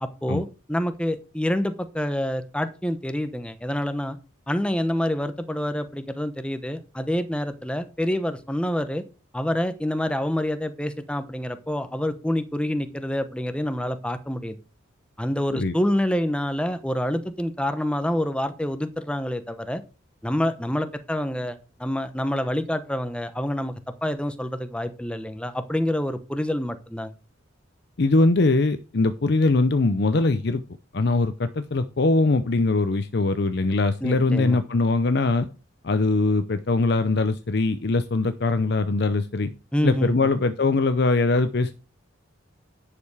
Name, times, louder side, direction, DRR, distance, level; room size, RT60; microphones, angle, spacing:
voice 1, 0.0-4.2 4.5-9.0 9.3-14.6 15.2-19.8 20.2-23.7 24.0-27.1 34.0-34.6 39.7-40.2, left 1 dB, 5° left, 10 dB, 0.8 m, -27 dB
voice 2, 28.0-30.6 30.9-35.5 35.8-39.5 39.8-41.7, left 3 dB, 55° left, 10 dB, 0.6 m, -22 dB
10.0 x 6.7 x 4.9 m, 0.33 s
head